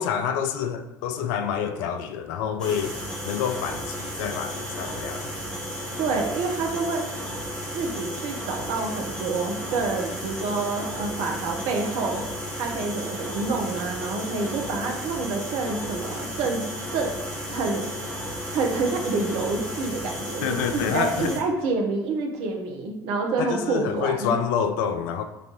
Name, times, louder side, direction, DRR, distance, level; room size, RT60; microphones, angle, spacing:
voice 1, 0.0-2.9 3.3-5.3 20.4-21.3 23.4-25.2, left 7 dB, 60° left, 0.4 m, -27 dB
sound 1, 2.6-21.4, equal, 5° left, 1.0 m, -33 dB
voice 2, 6.0-7.0 7.7-12.2 12.6-16.6 16.9-17.2 17.5-24.3, right 3 dB, 55° right, 0.8 m, -28 dB
6.9 x 2.6 x 2.9 m
figure-of-eight pair, 60°, 12 cm